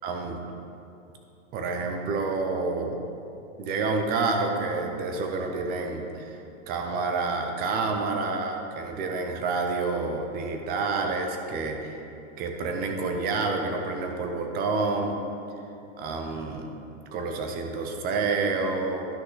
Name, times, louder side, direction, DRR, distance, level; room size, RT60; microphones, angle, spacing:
voice 1, 0.0-0.4 1.5-3.0 3.6-6.4 6.7-12.0 12.4-15.2 16.0-16.7 17.1-19.1, right 3 dB, 25° right, 4 dB, 0.7 m, -28 dB
10.5 x 6.1 x 3.9 m, 2.7 s
hypercardioid pair, 145°, 38 cm